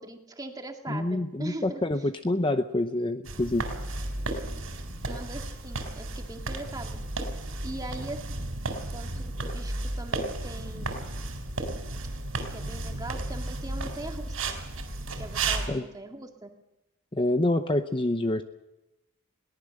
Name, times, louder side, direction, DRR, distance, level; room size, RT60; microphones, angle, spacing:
voice 1, 0.0-1.8 5.1-7.0 7.6-8.6 8.9-11.3 12.4-14.4 15.2-16.5, right 1 dB, 15° right, 3 dB, 2.2 m, -41 dB
voice 2, 0.9-3.7 15.7-15.8 17.1-18.4, left 1 dB, 25° left, 8 dB, 0.7 m, -27 dB
sound 1, 3.2-15.7, right 2 dB, 75° right, 4.2 m, -33 dB
22.0 x 18.5 x 6.6 m, 0.95 s
head